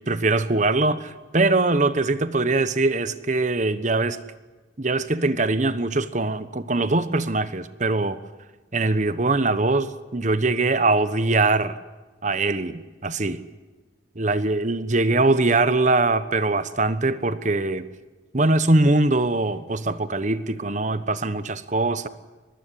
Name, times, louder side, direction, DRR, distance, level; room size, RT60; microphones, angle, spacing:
voice 1, 0.1-4.2 4.8-8.2 8.7-11.8 12.2-13.4 14.2-17.9 18.3-22.1, right 2 dB, 40° right, 13 dB, 1.2 m, -22 dB
23.5 x 19.5 x 9.9 m, 1.2 s
head